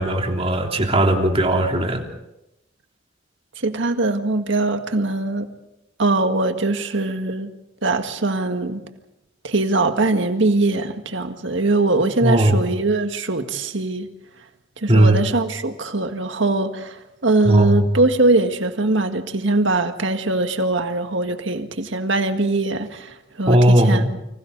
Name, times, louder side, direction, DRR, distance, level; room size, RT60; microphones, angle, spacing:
voice 1, 0.0-2.0 12.2-12.6 14.9-15.2 17.4-18.0 23.5-24.1, right 1 dB, 30° right, 2 dB, 3.1 m, -17 dB
voice 2, 3.6-5.5 6.0-7.5 7.8-8.8 9.4-14.1 14.8-24.2, right 2 dB, 70° right, 7 dB, 1.9 m, -21 dB
30.0 x 25.5 x 4.1 m, 0.88 s
head